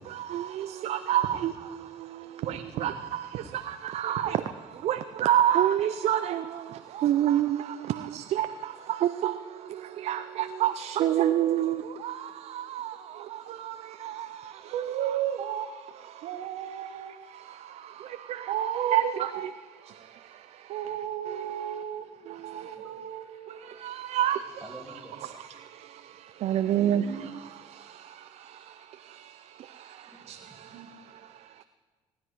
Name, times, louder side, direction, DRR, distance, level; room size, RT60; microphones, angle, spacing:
voice 1, 0.2-14.7 16.1-16.3 16.7-16.8 17.3-19.5 19.9-20.7 21.3-21.8 22.3-22.7 23.5-24.6 25.7-27.0 27.4-31.6, right 11 dB, 60° right, 0.5 m, -30 dB
voice 2, 11.0-11.6 13.1-13.3 14.6-15.7 16.2-17.1 18.5-19.5 20.7-23.6 26.8-27.4 30.7-30.9, right 10 dB, 80° right, 1.0 m, -34 dB
voice 3, 24.6-25.2 26.7-27.1 30.1-30.9, right 2 dB, 5° right, 3.1 m, -46 dB
18.0 x 10.0 x 4.7 m
supercardioid pair, 70°, 12 cm